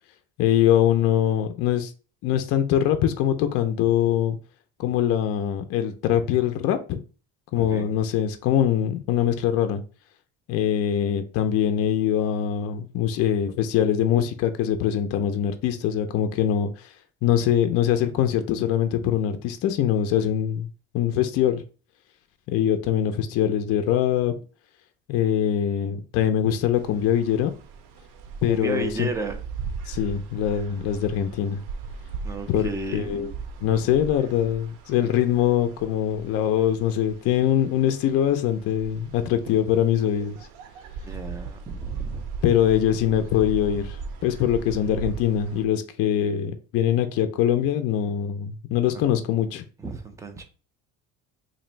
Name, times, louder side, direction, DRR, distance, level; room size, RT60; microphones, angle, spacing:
voice 1, 0.4-1.9 2.2-4.4 4.8-7.0 7.5-9.8 10.5-16.9 17.2-20.7 20.9-21.6 22.5-24.3 25.1-27.5 28.4-29.1 29.9-31.6 32.5-33.3 33.6-40.4 42.4-49.6, left 10 dB, 50° left, 0.4 m, -23 dB
voice 2, 7.5-7.9 28.5-29.4 32.2-33.3 33.6-33.9 41.0-42.2 48.9-49.1 49.8-50.4, right 2 dB, 10° right, 0.4 m, -33 dB
sound 1, 26.8-45.7, right 5 dB, 85° right, 0.6 m, -38 dB
2.9 x 2.6 x 4.2 m
cardioid pair, 155°, 31 cm